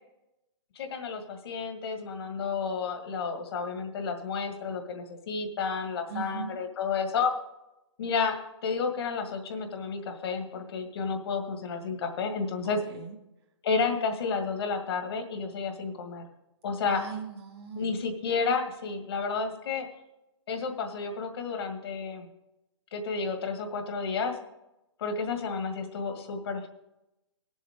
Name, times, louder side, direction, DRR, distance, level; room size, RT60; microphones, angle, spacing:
voice 1, 0.8-7.3 8.0-8.4 8.6-12.8 13.6-16.2 16.6-17.0 17.7-19.9 20.5-22.3 22.9-24.4 25.0-26.7, left 5 dB, 55° left, 5 dB, 1.9 m, -31 dB
voice 2, 6.1-6.6 12.6-13.1 16.9-17.9, right 6 dB, 55° right, -1 dB, 2.8 m, -39 dB
18.5 x 7.3 x 3.7 m, 0.92 s
hypercardioid pair, 145°, 15 cm